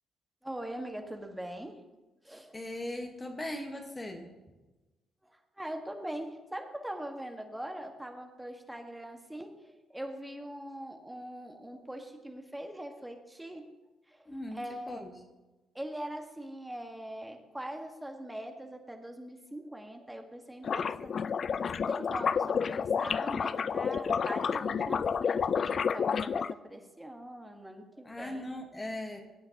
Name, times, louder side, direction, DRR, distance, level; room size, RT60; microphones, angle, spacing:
voice 1, 0.4-1.7 2.2-2.6 5.2-13.6 14.1-14.9 15.7-28.4, right 1 dB, 10° right, 4 dB, 1.6 m, -42 dB
voice 2, 2.5-4.3 14.3-14.6 14.9-15.1 28.0-29.2, left 1 dB, 20° left, 3 dB, 1.4 m, -39 dB
sound 1, 20.6-26.5, left 6 dB, 50° left, 0.3 m, -30 dB
16.5 x 8.7 x 2.9 m, 1.1 s
hypercardioid pair, 50°, 0 cm